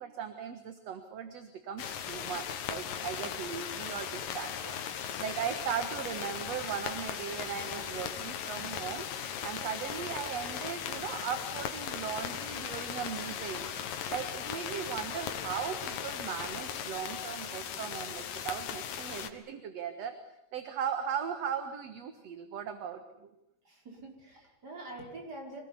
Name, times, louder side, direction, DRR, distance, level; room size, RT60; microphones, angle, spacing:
voice 1, 0.0-9.1 9.4-13.7 14.1-20.2 20.5-23.3, right 8 dB, 55° right, 8 dB, 2.4 m, -38 dB
sound 1, 1.8-19.3, left 8 dB, 90° left, 3.2 m, -38 dB
voice 2, 23.7-25.6, right 2 dB, 30° right, 1 dB, 5.7 m, -45 dB
25.5 x 19.5 x 9.8 m, 0.83 s
omnidirectional pair, 3.8 m